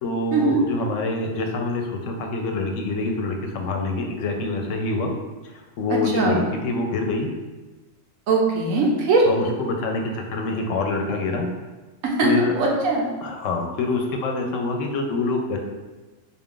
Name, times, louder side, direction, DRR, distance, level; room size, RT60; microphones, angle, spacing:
voice 1, 0.0-5.1 5.5-7.3 9.3-11.5 12.2-12.5 13.2-15.6, left 3 dB, 75° left, 2 dB, 0.9 m, -26 dB
voice 2, 8.3-9.3 12.2-12.3 12.6-13.1, right 3 dB, 80° right, -1 dB, 1.1 m, -20 dB
3.8 x 2.4 x 3.7 m, 1.2 s
omnidirectional pair, 1.4 m